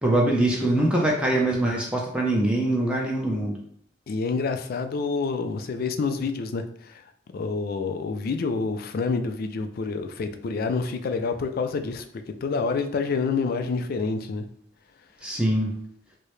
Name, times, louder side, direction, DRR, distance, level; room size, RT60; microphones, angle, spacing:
voice 1, 0.0-3.6 15.2-15.7, right 1 dB, 5° right, -2 dB, 0.5 m, -23 dB
voice 2, 4.1-7.0 7.3-14.5, left 4 dB, 50° left, 8 dB, 0.3 m, -28 dB
4.6 x 2.1 x 3.1 m, 0.65 s
head